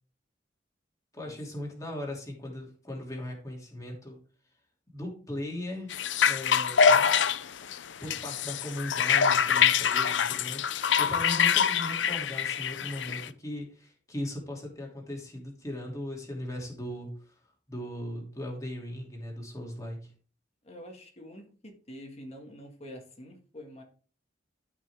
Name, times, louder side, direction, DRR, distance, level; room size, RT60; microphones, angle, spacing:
voice 1, 1.1-4.2 4.9-7.1 8.0-17.1 17.7-20.1, left 1 dB, 20° left, -1 dB, 2.9 m, -38 dB
sound 1, 5.9-13.3, left 7 dB, 85° left, 0.5 m, -25 dB
voice 2, 20.6-23.8, equal, 35° left, 3 dB, 2.0 m, -46 dB
13.5 x 5.9 x 3.6 m, 0.39 s
head